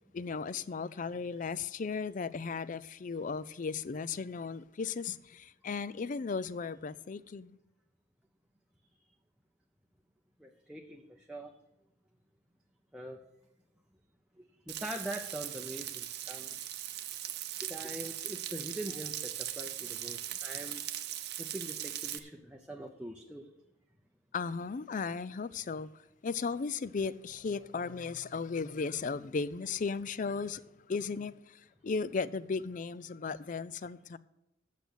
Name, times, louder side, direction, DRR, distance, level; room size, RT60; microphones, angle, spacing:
voice 1, 0.1-7.6 24.3-25.9 26.2-34.2, left 5 dB, 40° left, 0.4 m, -36 dB
voice 2, 10.4-11.5 12.9-13.2 14.4-16.6 17.6-20.8 21.4-23.5, right 1 dB, 5° right, 0.7 m, -43 dB
Frying (food), 14.7-22.2, right 12 dB, 60° right, 0.7 m, -39 dB
8.3 x 6.8 x 8.1 m
head